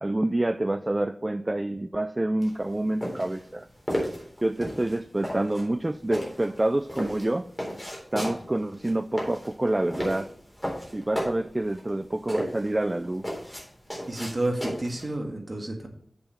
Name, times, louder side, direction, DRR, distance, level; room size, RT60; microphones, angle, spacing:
voice 1, 0.0-3.7 4.4-7.4 8.1-10.3 10.9-13.2, right 1 dB, 30° right, 11 dB, 0.4 m, -27 dB
sound 1, 2.4-15.1, equal, 5° left, 3.8 m, -34 dB
voice 2, 14.1-15.9, right 1 dB, 45° right, 3 dB, 1.8 m, -30 dB
7.8 x 7.0 x 4.4 m, 0.64 s
wide cardioid pair, 80°, 0 cm